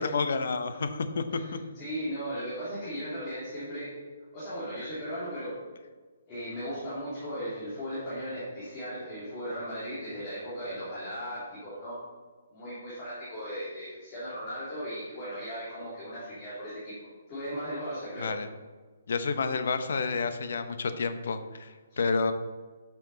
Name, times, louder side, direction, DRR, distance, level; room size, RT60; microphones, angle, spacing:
voice 1, 0.0-1.6 18.2-18.5 19.1-22.3, left 4 dB, 55° left, 9 dB, 0.8 m, -30 dB
voice 2, 1.3-3.9 4.3-5.5 6.3-11.9 12.5-18.3 21.9-22.0, equal, 15° left, -10 dB, 2.4 m, -37 dB
12.0 x 6.0 x 3.9 m, 1.4 s
hypercardioid pair, 180°, 0 cm